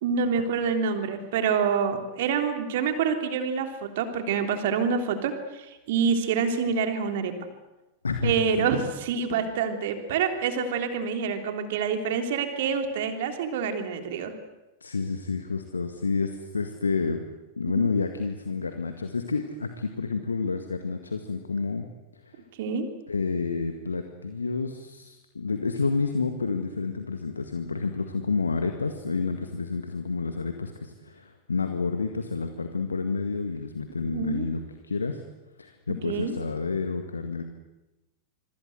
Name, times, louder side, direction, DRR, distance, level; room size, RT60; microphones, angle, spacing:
voice 1, 0.0-7.3 8.2-14.3 17.7-17.9 22.6-22.9 34.1-34.5 36.1-36.3, right 6 dB, 55° right, 6 dB, 3.3 m, -27 dB
voice 2, 8.0-8.7 14.8-17.3 17.6-21.9 22.2-22.4 23.1-35.2 35.6-37.4, left 4 dB, 75° left, 7 dB, 1.8 m, -29 dB
26.5 x 23.5 x 8.1 m, 1.0 s
figure-of-eight pair, 90°, 0 cm